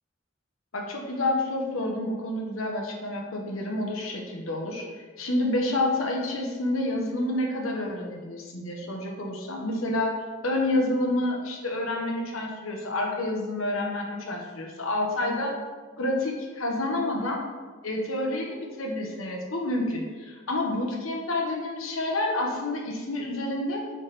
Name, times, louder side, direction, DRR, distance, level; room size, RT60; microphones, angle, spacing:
voice 1, 0.7-4.8 5.2-10.1 10.4-15.5 16.0-17.4 17.8-23.8, left 1 dB, 85° left, 0 dB, 1.3 m, -29 dB
8.1 x 3.6 x 4.3 m, 1.4 s
head